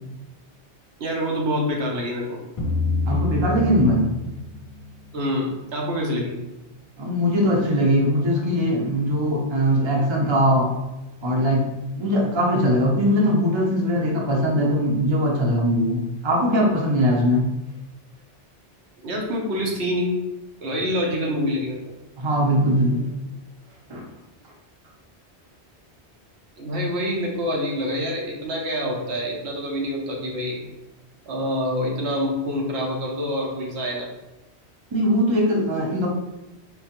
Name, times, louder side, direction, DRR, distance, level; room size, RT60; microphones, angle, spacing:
voice 1, 1.0-2.4 5.1-6.3 19.0-20.1 20.6-21.8 26.6-30.7 31.3-34.1, equal, 70° right, -1 dB, 1.0 m, -26 dB
sound 1, 2.6-5.7, left 3 dB, 50° left, 0.4 m, -28 dB
voice 2, 3.1-4.1 7.0-10.7 11.2-11.7 11.9-17.5 22.2-23.1 23.9-24.0 34.9-36.1, equal, 30° right, -2 dB, 0.7 m, -21 dB
3.8 x 3.0 x 2.9 m, 0.98 s
omnidirectional pair, 1.1 m